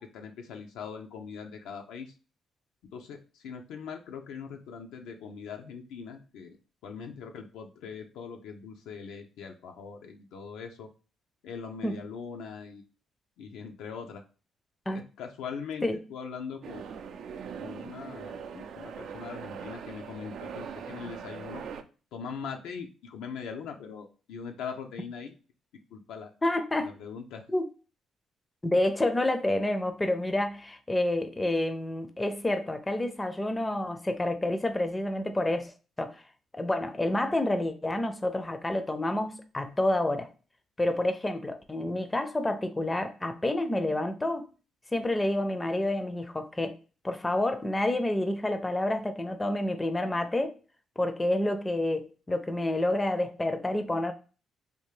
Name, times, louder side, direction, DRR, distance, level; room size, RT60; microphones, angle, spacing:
voice 1, 0.0-2.1 2.9-6.6 6.8-10.9 11.4-12.8 13.4-14.2 14.9-16.9 17.6-21.6 22.1-25.4 25.9-26.3 26.8-27.4, left 6 dB, 90° left, 0.5 m, -41 dB
sound 1, 16.6-21.8, right 7 dB, 70° right, 0.4 m, -41 dB
voice 2, 26.4-26.9 27.5-27.7 28.6-35.7 36.0-36.2 36.5-40.3 40.8-44.5 44.9-46.8 47.0-50.5 51.0-54.1, left 1 dB, 15° left, 0.4 m, -28 dB
3.4 x 2.3 x 3.1 m
cardioid pair, 90°, 0 cm